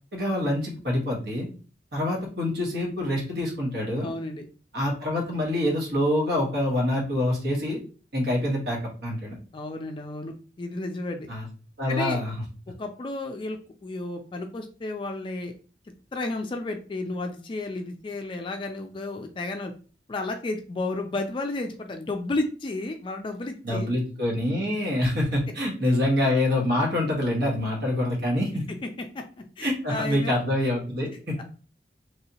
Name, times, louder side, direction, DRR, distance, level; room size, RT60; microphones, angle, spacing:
voice 1, 0.1-1.5 1.9-4.1 4.7-7.8 8.1-9.4 11.3-11.5 11.8-12.3 23.6-28.7 29.6-31.4, left 1 dB, 65° right, -1 dB, 1.3 m, -26 dB
voice 2, 4.0-4.4 9.5-11.3 11.9-12.2 12.8-15.5 16.1-19.7 20.1-23.9 28.8-29.3 29.6-30.4 31.4-31.5, left 2 dB, 30° left, 4 dB, 0.3 m, -32 dB
3.3 x 2.8 x 2.8 m, 0.38 s
head